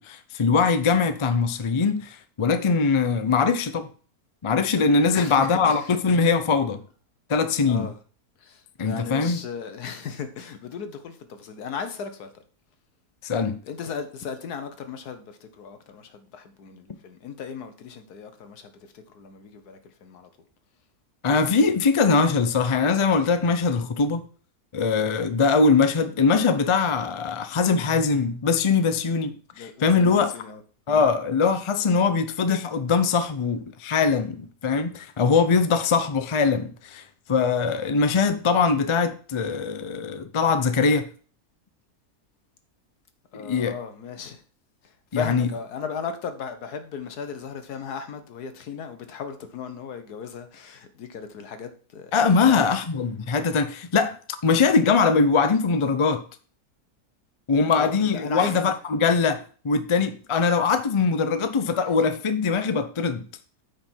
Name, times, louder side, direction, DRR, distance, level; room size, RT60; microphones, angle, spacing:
voice 1, 0.0-3.9 4.4-6.8 7.3-7.9 8.8-9.4 13.2-13.6 21.2-24.2 24.7-30.3 30.9-37.0 37.3-41.1 43.4-43.7 45.1-45.5 52.1-54.2 54.4-56.2 57.5-63.2, left 5 dB, 50° left, 0.3 m, -22 dB
voice 2, 5.1-6.2 7.6-8.0 8.4-12.3 13.6-20.3 29.5-30.6 43.3-44.4 44.8-52.7 57.8-58.6, left 6 dB, 80° left, 1.6 m, -36 dB
9.3 x 5.2 x 4.5 m
omnidirectional pair, 1.6 m